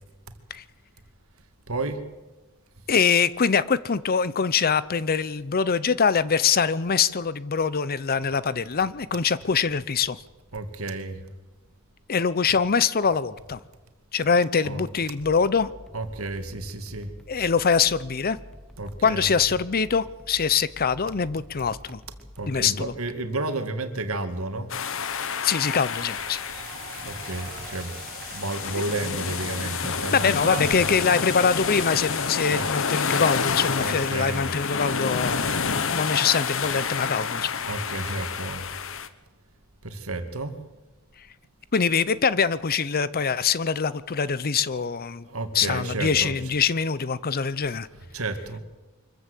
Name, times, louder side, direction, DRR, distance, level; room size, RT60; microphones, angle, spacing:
voice 1, 1.7-2.0 10.5-11.3 14.6-14.9 15.9-17.1 18.8-19.3 22.4-24.7 27.0-27.9 28.3-30.9 32.5-32.7 33.8-34.5 37.7-38.7 39.8-40.6 45.2-46.4 48.1-48.6, right 2 dB, 75° right, 8 dB, 2.2 m, -31 dB
voice 2, 2.9-10.2 12.1-13.6 14.1-15.7 17.3-18.4 19.0-22.0 22.5-22.9 25.4-26.4 30.1-37.5 41.7-45.2 45.5-47.9, left 6 dB, 45° left, 17 dB, 0.7 m, -24 dB
sound 1, 15.2-23.0, equal, ahead, 1.0 m, -47 dB
sound 2, 24.7-39.1, left 6 dB, 65° left, 1.2 m, -29 dB
Applause, 25.8-39.0, right 5 dB, 45° right, 2.7 m, -46 dB
24.5 x 14.5 x 8.3 m, 1.2 s
head